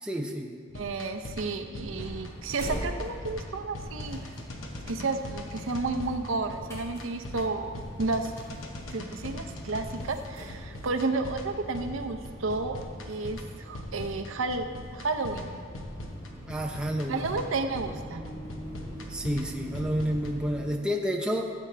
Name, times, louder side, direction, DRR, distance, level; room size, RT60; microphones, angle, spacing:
voice 1, 0.0-0.6 16.5-17.3 19.1-21.5, equal, 5° right, 1 dB, 0.6 m, -30 dB
sound 1, 0.7-20.3, left 1 dB, 75° left, 1.0 m, -41 dB
voice 2, 0.7-4.2 4.9-8.3 8.9-12.8 13.1-15.6 17.1-18.2, right 3 dB, 75° right, 7 dB, 0.7 m, -32 dB
sound 2, 1.9-20.6, equal, 15° left, 2.6 m, -44 dB
sound 3, 4.0-13.2, left 2 dB, 40° left, 0.5 m, -52 dB
15.0 x 7.6 x 3.3 m, 2.1 s
head